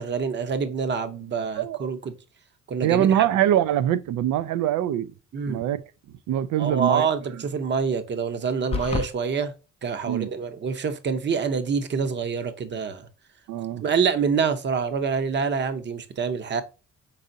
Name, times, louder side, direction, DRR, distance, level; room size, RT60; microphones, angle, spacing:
voice 1, 0.0-2.1 2.7-3.3 5.3-5.6 6.6-9.5 9.8-13.1 13.8-16.6, right 6 dB, 35° right, 0.7 m, -26 dB
voice 2, 1.6-1.9 2.8-5.1 5.5-5.8 6.3-7.1 10.1-10.3 13.5-13.8, right 11 dB, 75° right, 0.4 m, -23 dB
sound 1, 8.7-9.1, left 5 dB, 20° left, 0.4 m, -27 dB
5.5 x 3.6 x 2.6 m
cardioid pair, 90°, 30 cm